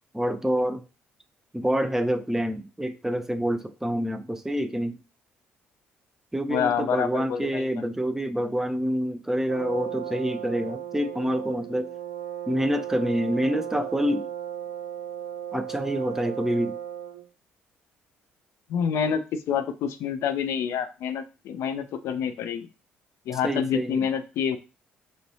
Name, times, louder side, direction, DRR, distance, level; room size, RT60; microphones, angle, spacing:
voice 1, 0.1-0.8 1.5-5.0 6.3-12.0 12.5-14.3 15.5-16.8 23.4-24.1, equal, 10° right, 0.4 m, -27 dB
voice 2, 6.5-7.7 18.7-22.7 23.3-24.6, left 7 dB, 60° left, 0.4 m, -27 dB
Brass instrument, 9.5-17.3, right 9 dB, 90° right, 0.4 m, -36 dB
3.1 x 2.9 x 2.7 m
figure-of-eight pair, 50°, 5 cm